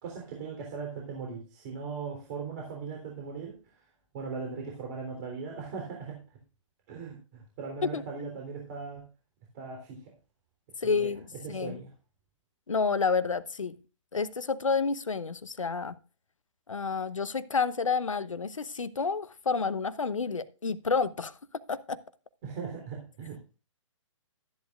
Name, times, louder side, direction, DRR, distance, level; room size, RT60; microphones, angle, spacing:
voice 1, 0.0-3.9 4.1-6.4 6.9-9.0 9.5-10.1 10.8-11.9 22.4-23.6, right 5 dB, 35° right, 3.5 m, -39 dB
voice 2, 10.8-11.8 12.7-13.7 14.1-15.9 16.7-21.3 21.7-22.0, left 5 dB, 75° left, 1.1 m, -29 dB
13.5 x 10.5 x 2.5 m
figure-of-eight pair, 130°, 17 cm